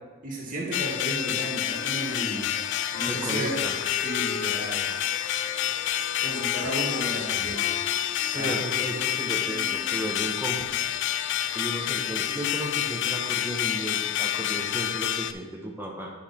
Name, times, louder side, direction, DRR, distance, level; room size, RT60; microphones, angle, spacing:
voice 1, 0.2-2.5 2.9-3.5 4.0-4.8 5.9-7.7 8.3-8.6, right 1 dB, 40° right, -4 dB, 2.0 m, -33 dB
sound 1, 0.7-15.3, left 12 dB, 60° left, 0.3 m, -28 dB
Wind instrument woodwind instrument, 1.1-10.1, left 3 dB, 30° left, 0.7 m, -41 dB
voice 2, 3.0-3.7 8.3-10.6 11.5-16.1, right 1 dB, 10° right, 0 dB, 1.0 m, -34 dB
8.5 x 5.6 x 4.3 m, 1.3 s
head